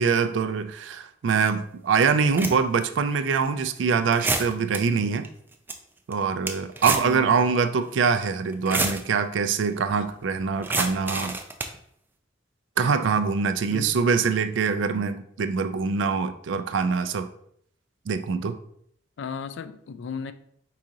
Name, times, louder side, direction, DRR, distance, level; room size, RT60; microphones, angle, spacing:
voice 1, 0.0-5.3 6.1-11.4 12.8-17.3 18.1-18.6, right 5 dB, 80° right, 0.4 m, -24 dB
sound 1, 1.5-1.6 2.2-2.8 3.3-3.5 4.1-4.8 5.2-5.3 5.5-5.7 6.1-7.2 7.4-7.5 8.5-9.0 10.6-11.8, right 3 dB, 10° right, 0.3 m, -28 dB
voice 2, 7.0-7.3 13.7-14.0 19.2-20.3, left 5 dB, 75° left, 0.3 m, -35 dB
4.8 x 2.8 x 3.7 m
head